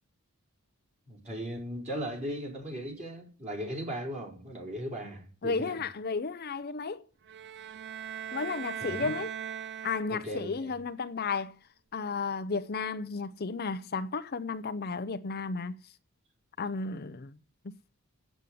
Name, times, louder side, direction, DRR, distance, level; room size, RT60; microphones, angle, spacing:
voice 1, 1.1-5.8 8.8-9.1 10.1-10.8, equal, 35° right, 4.3 m, -37 dB
voice 2, 5.4-7.0 8.3-9.3 9.8-11.6 11.9-15.8 16.6-17.3, left 4 dB, 45° left, 0.6 m, -33 dB
sound 1, 7.3-10.5, right 9 dB, 55° right, 0.5 m, -39 dB
8.4 x 8.2 x 9.1 m
head